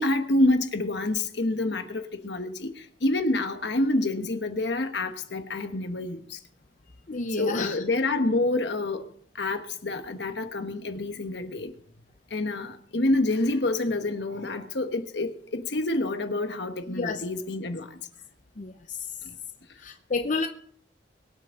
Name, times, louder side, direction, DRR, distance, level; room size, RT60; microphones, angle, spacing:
voice 1, 0.0-2.7 3.0-6.4 7.4-9.0 9.4-11.7 12.3-18.0, left 2 dB, 70° left, 1.2 m, -27 dB
voice 2, 7.1-7.8 17.0-17.2 18.6-19.0 19.8-20.5, left 3 dB, 45° left, 0.7 m, -30 dB
23.0 x 8.0 x 3.8 m
head